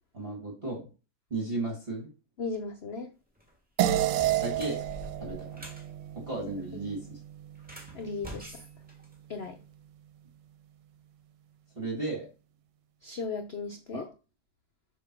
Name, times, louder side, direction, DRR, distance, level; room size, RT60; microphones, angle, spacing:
voice 1, 0.1-0.9 1.3-2.1 4.4-4.8 5.2-5.5 6.1-7.1 11.7-12.3 13.9-14.1, right 2 dB, 35° right, 1.8 m, -34 dB
voice 2, 2.4-3.1 6.7-6.8 7.9-8.6 9.3-9.6 13.0-14.1, left 4 dB, 65° left, 0.6 m, -36 dB
sound 1, 3.3-3.5 4.1-5.9 7.5-9.6, equal, 5° right, 1.7 m, -46 dB
sound 2, 3.8-8.5, right 12 dB, 80° right, 1.2 m, -31 dB
6.7 x 2.9 x 5.8 m
omnidirectional pair, 1.9 m